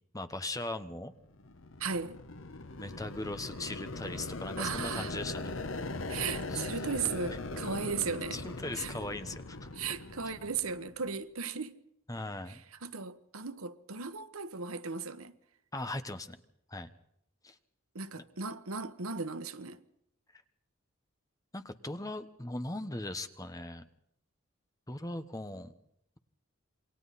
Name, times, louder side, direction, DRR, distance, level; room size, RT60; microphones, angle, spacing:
voice 1, 0.1-1.1 2.8-5.9 6.5-6.6 8.3-9.7 10.2-10.3 12.1-12.6 15.7-16.4 16.7-16.9 17.4-17.6 20.3-20.4 21.5-23.8 24.9-25.7, left 2 dB, 15° left, 1.2 m, -39 dB
sound 1, 1.3-11.1, left 2 dB, 70° left, 1.2 m, -40 dB
voice 2, 1.8-2.2 4.6-5.1 6.1-8.4 8.7-8.9 9.7-11.7 12.5-15.4 17.9-19.8, right 5 dB, 90° right, 1.3 m, -36 dB
28.0 x 23.5 x 4.2 m
head